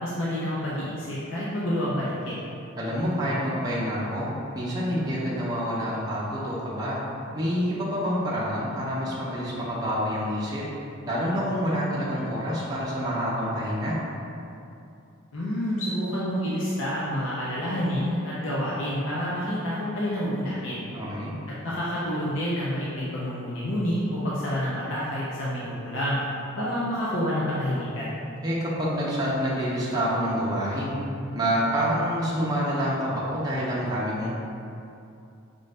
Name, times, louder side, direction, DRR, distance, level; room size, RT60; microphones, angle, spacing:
voice 1, 0.0-2.4 15.3-20.8 21.6-26.2 26.6-28.1, equal, 65° left, -7 dB, 0.6 m, -28 dB
voice 2, 2.8-4.3 4.5-7.0 7.3-10.6 11.0-14.0 20.9-21.3 28.4-31.0 31.3-34.4, equal, 20° right, -7 dB, 0.6 m, -27 dB
5.2 x 2.6 x 3.3 m, 2.6 s
head